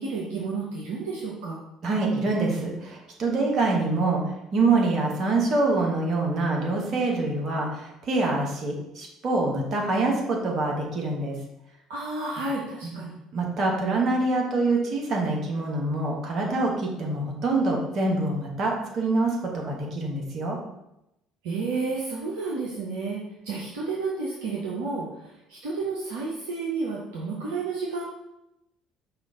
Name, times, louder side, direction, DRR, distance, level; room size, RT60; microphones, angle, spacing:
voice 1, 0.0-1.6 11.9-13.1 21.4-28.1, right 3 dB, 65° right, -4 dB, 0.6 m, -31 dB
voice 2, 1.8-4.2 4.5-11.3 12.8-12.9 13.3-20.6, right 2 dB, 45° right, 0 dB, 1.0 m, -25 dB
4.9 x 2.4 x 3.8 m, 0.87 s
figure-of-eight pair, 55°, 0 cm